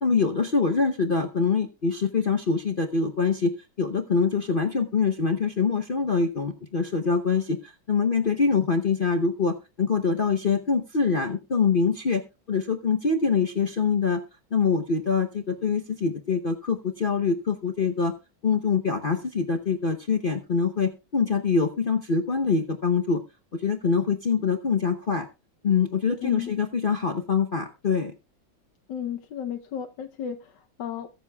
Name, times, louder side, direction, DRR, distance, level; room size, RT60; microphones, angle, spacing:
voice 1, 0.0-3.5 3.8-12.2 12.5-14.2 14.5-18.1 18.4-23.2 23.5-25.3 25.6-28.1, left 5 dB, 50° left, 5 dB, 0.6 m, -24 dB
voice 2, 26.2-26.6 28.9-31.1, left 9 dB, 70° left, 5 dB, 1.5 m, -33 dB
22.5 x 7.5 x 2.3 m, 0.29 s
omnidirectional pair, 2.1 m